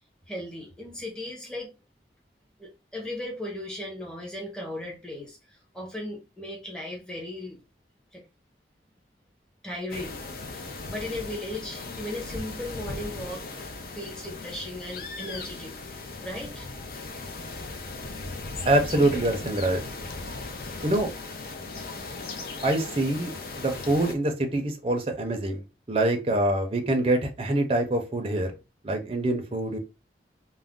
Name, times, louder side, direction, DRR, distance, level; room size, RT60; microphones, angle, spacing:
voice 1, 0.3-1.7 2.6-7.6 8.1-8.2 9.6-10.2 10.5-15.7 16.2-16.7 18.9-19.1, left 1 dB, 5° left, 0.7 m, -37 dB
sound 1, 9.9-24.1, left 3 dB, 55° left, 0.5 m, -38 dB
voice 2, 18.6-19.8 20.8-21.1 22.6-23.3 23.6-25.6 25.9-28.5 28.8-29.8, right 1 dB, 30° right, 0.5 m, -25 dB
2.4 x 2.1 x 3.5 m
head